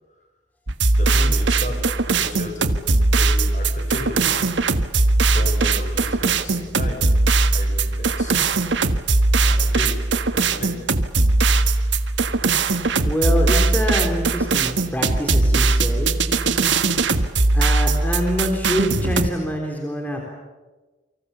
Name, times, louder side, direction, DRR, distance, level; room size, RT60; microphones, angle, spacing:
sound 1, 0.7-19.3, right 3 dB, 90° right, 1.5 m, -19 dB
voice 1, 0.9-2.7 3.0-4.5 5.2-8.6 9.4-10.1 10.3-10.9, left 2 dB, 40° left, 4 dB, 6.9 m, -35 dB
voice 2, 13.0-16.4 17.5-20.3, equal, 10° left, 1 dB, 3.8 m, -25 dB
29.0 x 25.0 x 7.1 m, 1.2 s
head